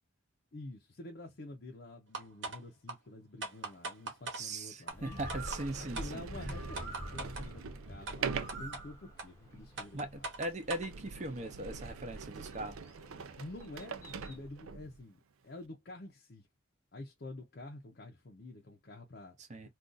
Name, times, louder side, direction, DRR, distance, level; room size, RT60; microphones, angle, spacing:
voice 1, 0.5-5.2 5.8-10.2 13.4-16.5 16.9-19.4 19.6-19.7, left 2 dB, 50° left, 0.6 m, -48 dB
sound 1, 2.1-2.6 2.9-3.0 3.4-4.4 4.9-5.0 5.3-5.6 5.9-6.1 6.5-7.5 8.1-8.2 8.5-8.8 9.2-9.3 9.8-10.9, right 3 dB, 60° right, 1.0 m, -40 dB
Sliding door, 3.7-3.8 4.5-4.6 5.1-15.0, right 5 dB, 85° right, 0.4 m, -44 dB
voice 2, 4.3-6.2 9.9-12.8 19.5-19.7, right 2 dB, 35° right, 0.6 m, -39 dB
Bird, 4.9-14.5, equal, 15° left, 0.7 m, -48 dB
2.5 x 2.3 x 3.8 m
head